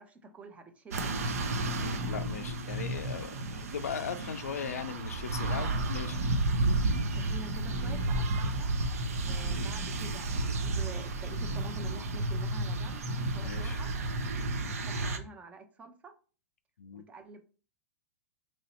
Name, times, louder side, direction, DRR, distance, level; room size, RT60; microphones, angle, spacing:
voice 1, 0.0-1.4 5.5-5.8 7.1-8.7 9.2-13.0 13.3-13.9 14.8-16.1 16.9-17.4, right 3 dB, 15° right, 6 dB, 0.6 m, -47 dB
sound 1, 0.9-15.2, right 2 dB, 75° right, 0.6 m, -32 dB
voice 2, 1.8-6.2 13.4-13.8 14.6-14.8 16.8-17.0, left 7 dB, 85° left, 9 dB, 0.4 m, -39 dB
3.1 x 2.7 x 4.2 m, 0.37 s
hypercardioid pair, 115°, 8 cm